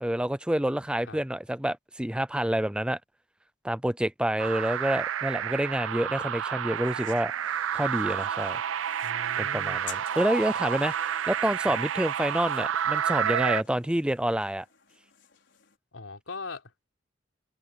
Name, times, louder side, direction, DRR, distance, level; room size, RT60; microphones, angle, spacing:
voice 1, 0.0-3.0 3.6-7.3 7.7-8.6 9.4-14.7, right 1 dB, 5° right, 0.5 m, -28 dB
sound 1, 4.4-13.6, right 9 dB, 90° right, 0.5 m, -30 dB
sound 2, 6.8-15.8, left 10 dB, 65° left, 6.0 m, -52 dB
voice 2, 9.0-9.8 11.7-11.8 15.9-16.6, left 3 dB, 85° left, 3.8 m, -40 dB
head